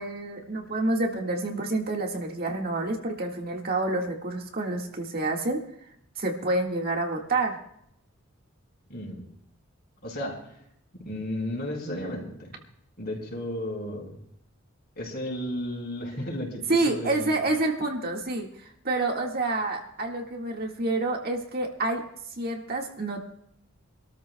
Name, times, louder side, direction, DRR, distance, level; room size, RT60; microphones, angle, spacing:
voice 1, 0.0-5.6 6.2-7.6 16.7-22.0 22.4-23.3, right 2 dB, 45° right, 1 dB, 1.8 m, -28 dB
voice 2, 8.9-9.2 10.0-10.5 10.9-12.5 13.0-14.2 15.0-17.4, left 1 dB, 50° left, 1 dB, 4.6 m, -34 dB
26.5 x 13.5 x 2.3 m, 0.72 s
head